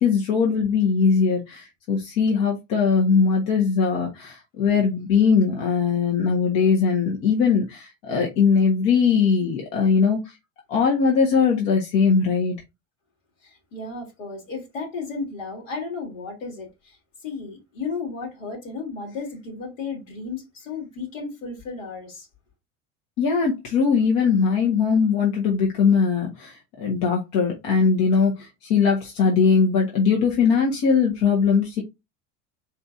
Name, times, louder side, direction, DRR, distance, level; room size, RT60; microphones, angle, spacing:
voice 1, 0.0-10.3 10.7-12.5 23.2-31.8, left 5 dB, 60° left, 1.5 m, -20 dB
voice 2, 13.4-17.0 17.2-22.3, left 4 dB, 80° left, 2.7 m, -34 dB
4.3 x 3.9 x 2.6 m
hypercardioid pair, 85°, 38 cm